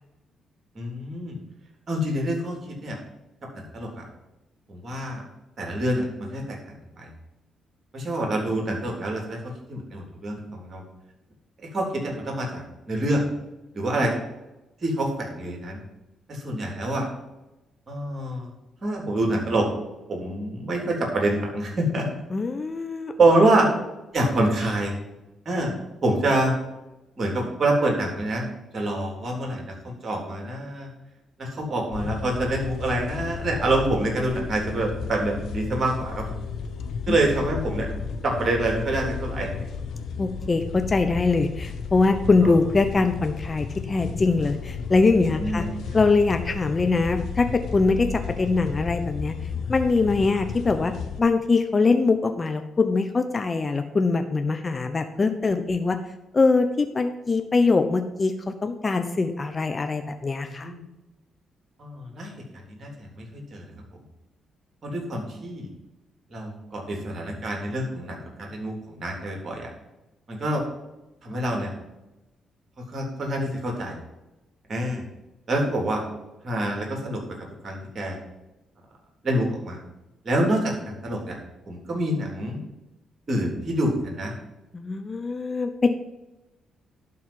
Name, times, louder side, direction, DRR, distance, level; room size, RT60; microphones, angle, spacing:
voice 1, 0.8-1.4 1.9-3.0 3.5-4.1 4.7-5.2 5.6-6.6 7.0-7.1 7.9-10.8 11.6-13.3 13.7-14.1 14.8-15.8 16.3-17.1 17.9-18.5 18.8-19.7 20.1-22.1 23.2-23.7 24.1-24.9 25.5-25.7 26.0-26.5 27.2-28.5 28.7-30.9 31.4-36.2 37.1-37.9 38.2-39.5 42.4-42.5 45.3-46.0 60.5-60.8 61.8-62.3 62.7-64.0 64.8-65.7 66.3-69.7 70.3-70.7 71.2-71.7 72.9-74.0 74.7-75.0 75.5-76.0 76.4-77.2 77.6-78.2 79.2-79.8 80.2-81.4 81.7-82.6 83.3-84.3, right 1 dB, 45° right, 0 dB, 3.7 m, -26 dB
voice 2, 22.3-23.1 37.1-37.2 40.2-45.7 45.9-47.5 47.7-49.3 49.7-50.9 51.2-56.0 56.3-60.7 84.7-85.9, left 3 dB, 35° left, 7 dB, 0.9 m, -23 dB
sound 1, 31.9-51.2, left 6 dB, 70° left, 1.0 m, -33 dB
11.5 x 4.2 x 7.6 m, 1.0 s
hypercardioid pair, 50°, 0 cm